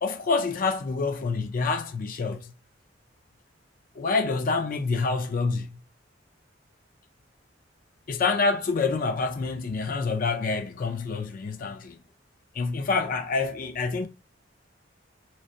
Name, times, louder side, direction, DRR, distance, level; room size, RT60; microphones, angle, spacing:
voice 1, 0.0-2.5 4.0-5.7 8.1-12.0 12.5-14.1, left 4 dB, 45° left, 0.4 m, -27 dB
3.2 x 3.1 x 2.7 m
head